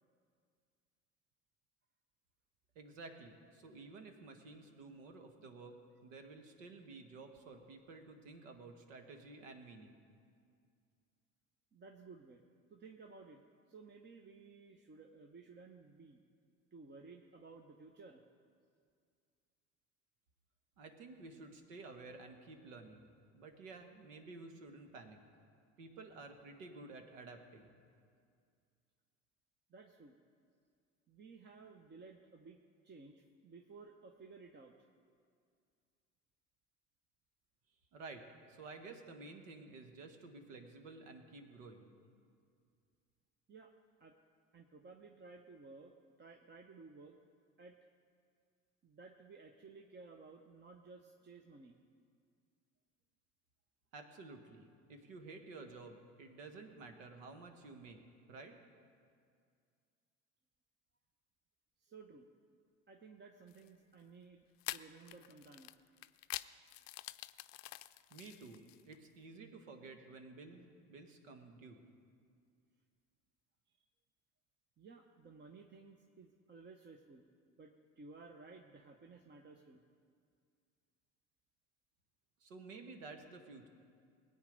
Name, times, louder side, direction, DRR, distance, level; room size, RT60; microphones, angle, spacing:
voice 1, 2.7-10.0 20.8-25.2 25.8-27.7 37.9-41.9 53.9-58.0 58.3-58.6 68.1-71.9 82.4-83.7, right 3 dB, 75° right, 6 dB, 1.7 m, -52 dB
voice 2, 11.7-12.4 12.7-16.2 16.7-18.2 29.7-30.2 31.1-34.9 43.5-43.7 44.0-44.2 44.5-47.2 47.6-47.8 48.8-51.8 61.8-62.3 62.9-65.8 73.7-73.9 74.8-77.2 77.6-79.8, right 4 dB, 25° right, 3 dB, 1.0 m, -56 dB
sound 1, 63.5-63.7 64.6-69.0, left 17 dB, 75° left, 0.5 m, -46 dB
20.5 x 8.9 x 5.3 m, 2.2 s
hypercardioid pair, 75°, 39 cm